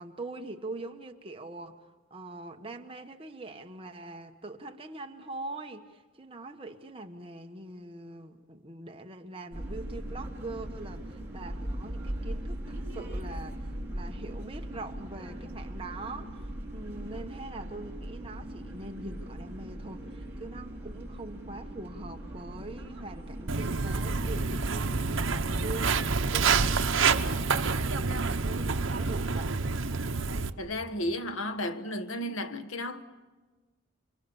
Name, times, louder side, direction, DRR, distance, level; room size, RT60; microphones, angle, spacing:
voice 1, 0.0-1.8 2.1-29.6, right 2 dB, 25° right, 1.2 m, -43 dB
sound 1, 9.5-25.7, right 1 dB, 10° right, 7.3 m, -39 dB
Walk footsteps, 23.5-30.5, right 4 dB, 70° right, 1.0 m, -28 dB
voice 2, 30.6-33.0, left 1 dB, 75° left, 1.3 m, -33 dB
28.0 x 25.0 x 7.1 m
head